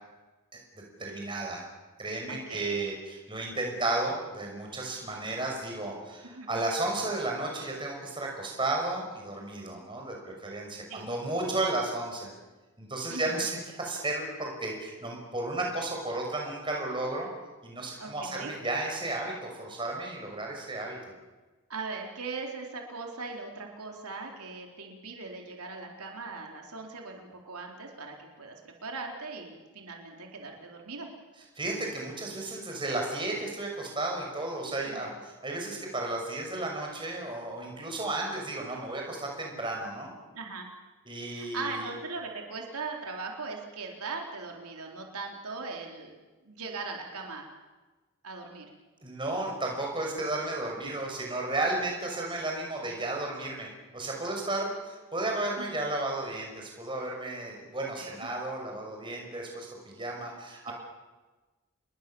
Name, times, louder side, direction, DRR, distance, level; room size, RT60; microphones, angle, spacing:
voice 1, 0.8-1.6 2.0-12.3 12.8-17.3 17.6-21.0 31.6-40.1 41.1-41.9 49.0-60.7, right 2 dB, 20° right, 0 dB, 5.9 m, -33 dB
voice 2, 2.3-2.8 6.2-6.6 10.9-11.1 13.1-13.4 18.0-18.5 21.7-31.1 34.8-35.1 40.3-40.7 41.3-46.2 46.4-47.5 48.2-48.7 50.8-51.0 55.6-55.8 58.0-58.3 60.7-60.8, right 4 dB, 85° right, 1 dB, 4.1 m, -40 dB
28.5 x 21.5 x 7.1 m, 1.2 s
head